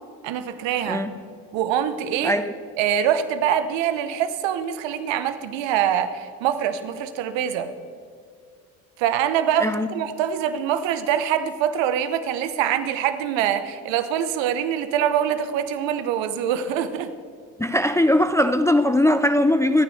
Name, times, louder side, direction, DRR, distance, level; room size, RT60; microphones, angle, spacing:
voice 1, 0.2-1.0 1.5-2.4 2.8-7.7 9.0-17.1, right 9 dB, 65° right, 1.1 m, -24 dB
voice 2, 17.6-19.8, left 1 dB, 5° left, 0.4 m, -20 dB
25.5 x 9.6 x 3.3 m
hypercardioid pair, 55°, 49 cm